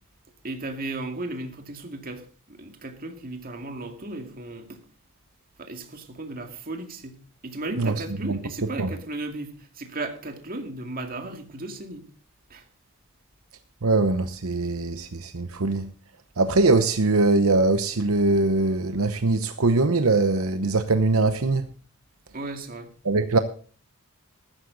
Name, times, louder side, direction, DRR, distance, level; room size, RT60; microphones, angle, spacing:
voice 1, 0.4-4.8 5.6-12.1 12.5-12.7 22.3-22.9, right 2 dB, 45° right, 2.2 m, -35 dB
voice 2, 13.8-15.9 16.4-21.7 23.0-23.4, right 3 dB, 75° right, 0.9 m, -22 dB
14.5 x 12.5 x 4.0 m
head